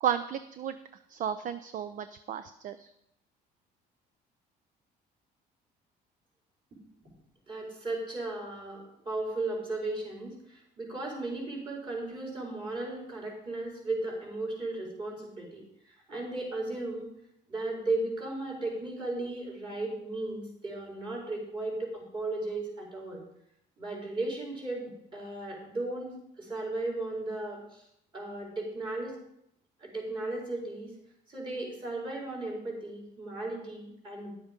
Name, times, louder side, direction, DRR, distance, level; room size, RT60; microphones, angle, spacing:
voice 1, 0.0-0.8 1.1-2.9, right 9 dB, 50° right, 12 dB, 0.6 m, -33 dB
voice 2, 7.5-15.6 16.1-17.1 17.5-23.2 23.8-27.9 28.1-29.2 29.8-30.9 31.3-34.3, right 2 dB, 30° right, -2 dB, 4.5 m, -35 dB
11.0 x 7.9 x 5.2 m, 0.78 s
cardioid pair, 110°, 17 cm